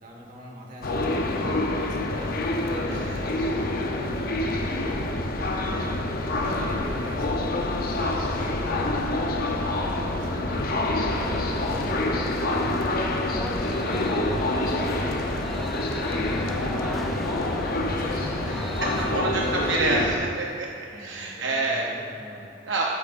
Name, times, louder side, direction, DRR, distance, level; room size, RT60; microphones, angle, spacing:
voice 1, 0.0-1.3 1.7-5.0 5.7-9.1 9.6-12.6 13.0-16.9 17.3-20.0 20.9-22.5, equal, 45° right, -2 dB, 1.5 m, -42 dB
sound 1, 0.8-20.2, left 2 dB, 50° left, 0.7 m, -27 dB
Wind, 4.4-19.7, equal, 15° right, 1.5 m, -42 dB
voice 2, 5.6-5.9 8.0-8.5 12.5-12.7 19.0-21.9 22.7-22.9, right 2 dB, 75° right, -2 dB, 0.8 m, -28 dB
sound 2, 11.1-19.1, equal, ahead, 0.3 m, -38 dB
11.0 x 8.8 x 2.5 m, 2.4 s
head